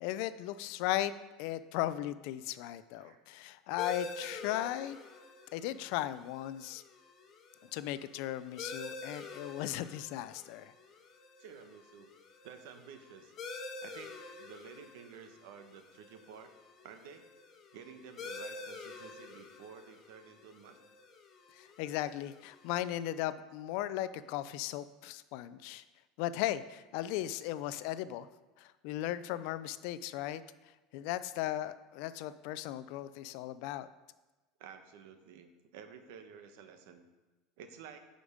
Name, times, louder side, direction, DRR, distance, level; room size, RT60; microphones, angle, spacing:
voice 1, 0.0-1.1 1.4-5.0 5.5-6.8 7.7-10.7 21.5-25.8 26.2-28.3 28.6-30.4 30.9-33.9, left 13 dB, 70° left, 14 dB, 0.4 m, -37 dB
sound 1, 3.8-22.9, left 3 dB, 35° left, 1.2 m, -48 dB
voice 2, 11.4-12.1 12.4-13.3 13.8-16.5 16.8-17.3 17.7-20.8 34.6-37.1 37.6-38.0, right 7 dB, 75° right, 7 dB, 1.0 m, -52 dB
9.5 x 5.1 x 5.1 m, 1.2 s
supercardioid pair, 130°, 0 cm